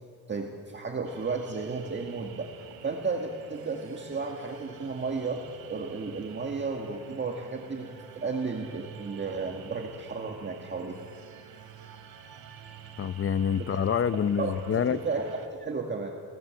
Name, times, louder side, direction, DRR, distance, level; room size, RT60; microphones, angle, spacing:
voice 1, 0.3-2.5 2.8-5.4 5.7-7.9 8.2-11.0 13.6-13.7 14.4-16.2, right 4 dB, 30° right, 1.8 m, -33 dB
sound 1, 1.0-15.5, right 8 dB, 85° right, 2.9 m, -49 dB
voice 2, 13.0-15.0, left 7 dB, 40° left, 0.7 m, -27 dB
29.0 x 18.0 x 7.7 m
wide cardioid pair, 140°, 35 cm